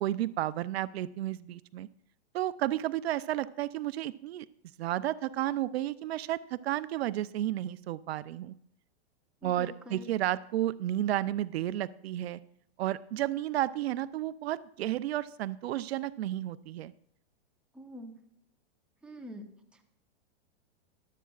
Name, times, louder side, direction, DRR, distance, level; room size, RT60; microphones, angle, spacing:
voice 1, 0.0-1.9 2.3-4.5 4.8-8.5 9.4-12.4 12.8-16.9, right 13 dB, 70° right, 16 dB, 0.6 m, -32 dB
voice 2, 9.4-10.1 17.7-18.1 19.0-19.8, equal, 5° right, 3 dB, 0.9 m, -46 dB
22.5 x 8.4 x 2.4 m, 0.76 s
supercardioid pair, 150°, 33 cm